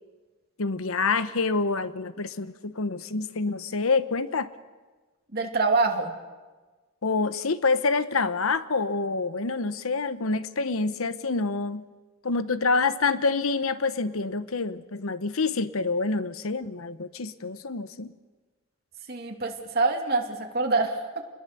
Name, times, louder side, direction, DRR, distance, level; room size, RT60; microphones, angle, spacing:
voice 1, 0.6-4.5 7.0-11.8 12.2-18.1, left 4 dB, 85° left, 13 dB, 0.9 m, -27 dB
voice 2, 5.3-6.2 19.1-21.3, right 3 dB, 45° right, 2 dB, 2.8 m, -26 dB
28.5 x 21.0 x 6.9 m, 1.3 s
head